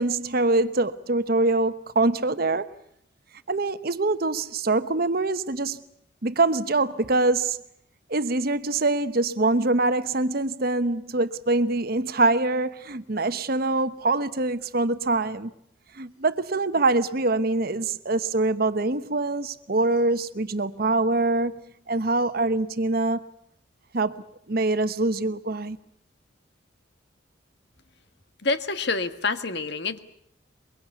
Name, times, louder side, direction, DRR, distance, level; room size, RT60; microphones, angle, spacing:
voice 1, 0.0-2.7 3.5-5.8 6.2-7.6 8.1-15.5 15.9-23.2 23.9-25.8, right 2 dB, 50° right, 1.0 m, -24 dB
voice 2, 28.4-30.0, left 3 dB, 60° left, 1.6 m, -27 dB
24.0 x 23.0 x 8.3 m
head